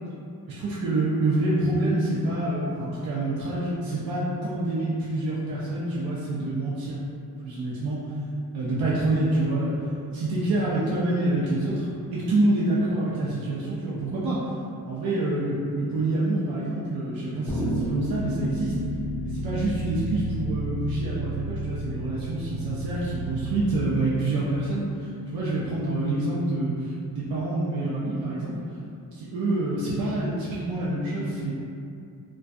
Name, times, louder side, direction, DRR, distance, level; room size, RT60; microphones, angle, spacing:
voice 1, 0.5-7.0 7.4-8.0 8.5-9.8 10.1-14.5 14.9-18.8 19.2-28.5 29.1-31.5, right 2 dB, 65° right, -7 dB, 0.5 m, -27 dB
sound 1, 17.5-23.7, right 1 dB, 5° right, 1.0 m, -31 dB
2.3 x 2.2 x 2.4 m, 2.5 s
cardioid pair, 105°, 38 cm